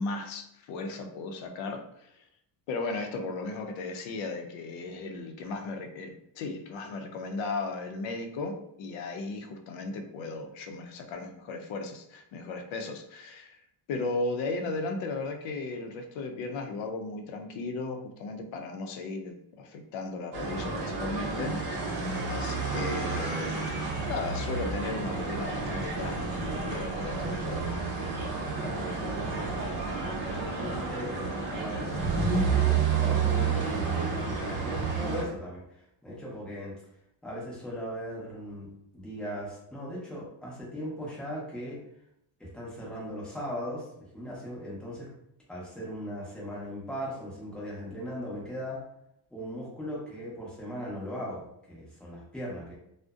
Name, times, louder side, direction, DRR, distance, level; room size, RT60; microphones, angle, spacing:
voice 1, 0.0-2.2 2.7-13.6 13.9-21.7 22.3-27.8, left 3 dB, 80° left, 5 dB, 0.5 m, -36 dB
sound 1, 20.3-35.2, right 5 dB, 45° right, 0.7 m, -30 dB
voice 2, 28.6-36.7 37.2-38.7 38.9-41.8 42.4-43.9 44.1-45.1 45.5-48.8 49.3-52.8, equal, ahead, -6 dB, 0.5 m, -38 dB
2.5 x 2.1 x 2.3 m, 0.78 s
cardioid pair, 155°, 45 cm